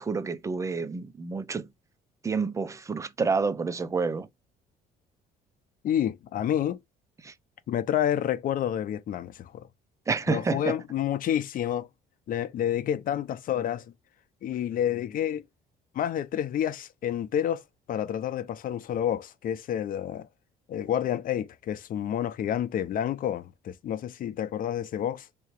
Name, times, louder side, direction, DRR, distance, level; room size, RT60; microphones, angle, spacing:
voice 1, 0.0-1.7 2.2-4.3 7.2-7.3 10.1-10.8, right 4 dB, 20° right, 0.5 m, -29 dB
voice 2, 5.8-6.8 7.7-9.7 10.3-11.9 12.3-13.8 14.4-15.4 15.9-17.6 17.9-20.3 20.7-25.3, left 10 dB, 55° left, 0.7 m, -29 dB
3.5 x 2.9 x 3.1 m
cardioid pair, 110°, 17 cm